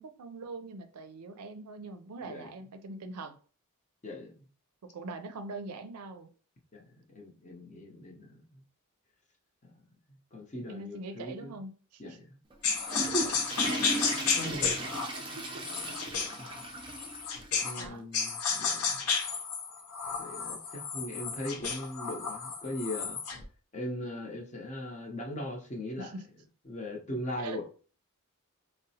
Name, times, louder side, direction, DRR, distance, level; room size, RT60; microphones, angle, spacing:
voice 1, 0.0-3.4 4.9-6.3 10.7-12.2 15.4-15.7 16.8-17.0 17.8-18.0 26.0-26.3 27.4-27.6, right 3 dB, 90° right, 0.4 m, -42 dB
voice 2, 7.1-8.4 10.3-11.6 12.0-12.2 13.1-13.4 14.3-14.8 16.4-16.7 17.6-19.0 20.2-23.2 23.7-26.1 26.7-27.6, left 1 dB, 30° left, 0.7 m, -39 dB
Water / Toilet flush, 12.5-17.5 17.8-17.9 18.6-18.7 20.0-20.1, right 2 dB, 20° right, 0.4 m, -37 dB
sound 1, 12.6-17.9 18.1-23.4, left 5 dB, 75° left, 0.6 m, -32 dB
3.9 x 2.0 x 2.7 m
head